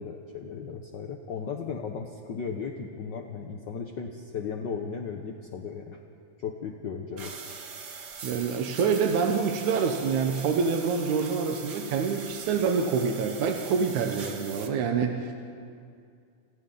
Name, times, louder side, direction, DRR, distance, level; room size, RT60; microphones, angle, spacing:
voice 1, 0.0-6.0 6.4-7.4, left 6 dB, 60° left, 3 dB, 1.1 m, -36 dB
sound 1, 7.2-14.7, right 5 dB, 45° right, 1.6 m, -42 dB
voice 2, 8.2-15.3, right 5 dB, 75° right, 3 dB, 2.6 m, -26 dB
29.5 x 28.0 x 4.0 m, 2.3 s
omnidirectional pair, 3.4 m